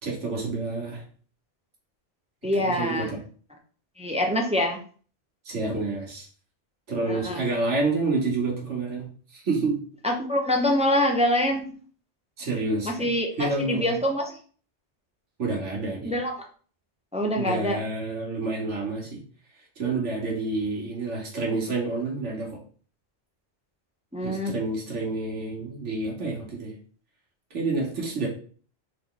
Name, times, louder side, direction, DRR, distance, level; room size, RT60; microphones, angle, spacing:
voice 1, 0.0-1.0 2.6-3.2 5.4-6.3 6.9-9.8 12.4-13.0 13.4-13.9 15.4-16.1 17.4-19.2 19.8-22.6 24.2-26.7 27.5-28.3, right 3 dB, 80° right, -1 dB, 1.7 m, -28 dB
voice 2, 2.4-3.1 4.0-4.8 7.0-7.4 10.0-11.8 12.8-14.4 16.0-16.4 17.1-17.8 24.1-24.6, left 1 dB, 10° right, 1 dB, 0.5 m, -25 dB
3.8 x 3.3 x 3.8 m, 0.43 s
omnidirectional pair, 1.2 m